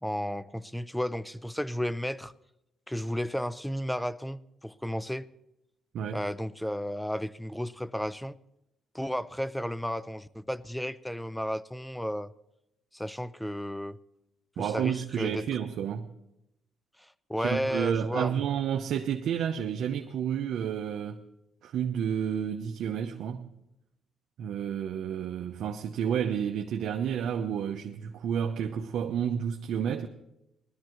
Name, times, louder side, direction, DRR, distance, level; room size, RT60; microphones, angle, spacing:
voice 1, 0.0-2.3 2.9-5.3 6.1-8.4 8.9-12.3 12.9-14.0 14.6-15.4 17.0-18.4, equal, 5° left, 0.5 m, -33 dB
voice 2, 14.6-16.1 17.4-21.2 21.6-23.5 24.4-30.1, right 8 dB, 75° right, 0.8 m, -30 dB
19.5 x 13.0 x 3.1 m
cardioid pair, 90°, 0 cm